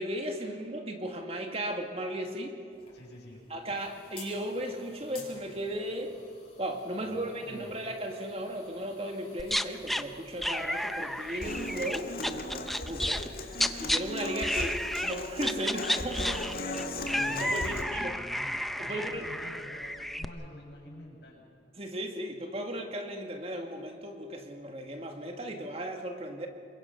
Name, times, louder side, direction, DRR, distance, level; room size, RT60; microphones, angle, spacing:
voice 1, 0.0-2.6 3.5-6.2 6.6-13.3 13.8-16.4 17.0-18.2 18.8-19.3 21.7-26.5, right 1 dB, 35° right, 4 dB, 1.9 m, -36 dB
sound 1, 2.7-13.7, left 4 dB, 30° left, 6.1 m, -55 dB
voice 2, 2.9-3.4 7.0-7.7 12.9-13.3 17.0-21.5, equal, 75° left, -2 dB, 7.0 m, -49 dB
sound 2, 9.4-10.0 10.4-14.0 14.4-15.1 15.4-20.3, equal, ahead, 0.6 m, -32 dB
Human voice / Acoustic guitar, 11.4-17.8, left 2 dB, 55° left, 2.0 m, -37 dB
27.5 x 23.0 x 5.8 m, 2.3 s
head